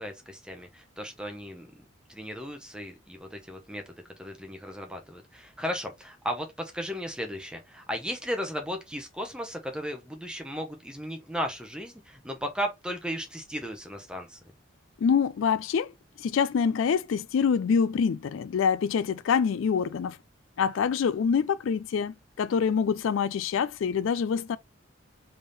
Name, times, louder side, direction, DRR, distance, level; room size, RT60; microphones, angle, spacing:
voice 1, 0.0-1.7 2.1-14.4, equal, 5° right, 0.8 m, -35 dB
voice 2, 15.0-15.9 16.2-20.2 20.6-24.6, left 6 dB, 75° left, 0.3 m, -25 dB
3.6 x 3.4 x 4.1 m
head